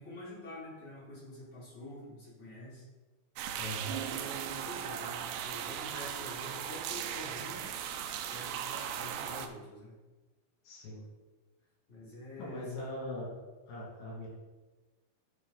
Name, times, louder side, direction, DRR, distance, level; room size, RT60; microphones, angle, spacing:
voice 1, 0.0-2.9 3.8-7.7 8.2-9.9 11.9-12.9, left 1 dB, 35° left, -9 dB, 3.6 m, -47 dB
sound 1, 3.4-9.5, right 9 dB, 90° right, 2.7 m, -38 dB
voice 2, 3.6-3.9 10.6-11.0 12.4-13.4 13.7-14.3, left 1 dB, 70° left, -4 dB, 4.2 m, -40 dB
10.5 x 5.2 x 4.0 m, 1.2 s
omnidirectional pair, 4.6 m